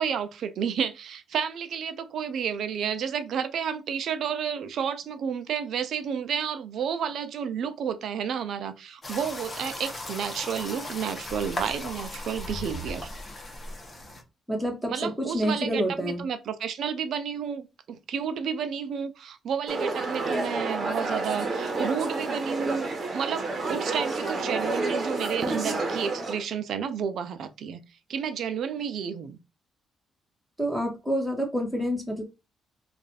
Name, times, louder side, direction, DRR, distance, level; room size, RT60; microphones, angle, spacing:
voice 1, 0.0-13.1 14.9-27.8 28.1-29.4, right 7 dB, 70° right, 0.6 m, -31 dB
sound 1, 9.0-14.2, left 1 dB, 30° left, 1.2 m, -37 dB
voice 2, 14.5-16.2 30.6-32.2, equal, 5° right, 1.7 m, -28 dB
sound 2, 19.7-26.4, right 3 dB, 40° right, 1.1 m, -29 dB
3.1 x 2.6 x 4.0 m
cardioid pair, 90°, 0 cm